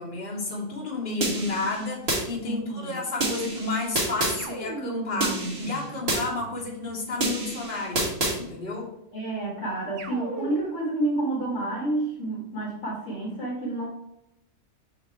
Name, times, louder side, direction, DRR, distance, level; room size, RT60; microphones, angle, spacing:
voice 1, 0.0-8.9, left 3 dB, 35° left, -5 dB, 1.9 m, -31 dB
sound 1, 1.2-2.2 3.2-4.4 5.2-6.2 7.2-8.4, right 2 dB, 45° right, 1.7 m, -28 dB
voice 2, 2.4-3.0 9.1-13.9, right 2 dB, 55° left, -4 dB, 1.7 m, -29 dB
sound 2, 4.4-6.9 10.0-11.0, right 3 dB, 75° right, 1.3 m, -37 dB
5.9 x 3.9 x 4.5 m, 0.84 s
omnidirectional pair, 1.6 m